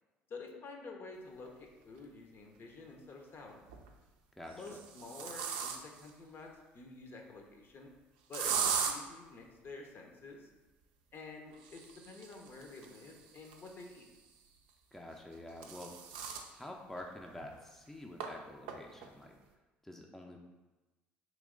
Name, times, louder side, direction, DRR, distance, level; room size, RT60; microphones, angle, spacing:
voice 1, 0.3-3.6 4.5-7.9 8.3-10.5 11.1-14.0, left 3 dB, 45° left, 2 dB, 0.7 m, -49 dB
sound 1, 1.9-2.0 3.5-3.9 4.5-6.1 8.3-8.9 11.5-14.2 15.2-16.5 17.0-17.1 17.4-17.5 18.2-18.3 18.7-19.1, right 7 dB, 80° right, 0.4 m, -38 dB
voice 2, 4.3-4.8 14.9-16.0 16.5-19.3 19.8-20.4, left 1 dB, 5° left, 1 dB, 0.5 m, -48 dB
3.1 x 2.9 x 3.7 m, 1.1 s
hypercardioid pair, 65°, 5 cm